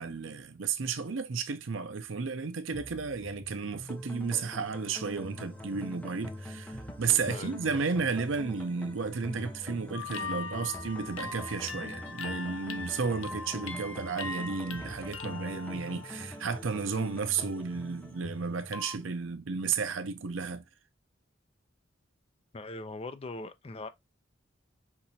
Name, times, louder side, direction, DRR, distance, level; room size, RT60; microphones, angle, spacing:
voice 1, 0.0-20.6, right 5 dB, 90° right, 0.7 m, -33 dB
sound 1, 2.7-4.9 5.2-8.9 9.2-12.9 13.2-16.9 17.2-18.8, equal, 10° right, 1.3 m, -48 dB
sound 2, 3.9-18.9, left 1 dB, 5° left, 1.0 m, -45 dB
sound 3, 9.9-16.8 17.2-17.6 18.7-19.0, left 4 dB, 85° left, 0.7 m, -41 dB
voice 2, 22.5-23.9, left 2 dB, 30° left, 0.5 m, -40 dB
5.9 x 2.9 x 2.7 m
head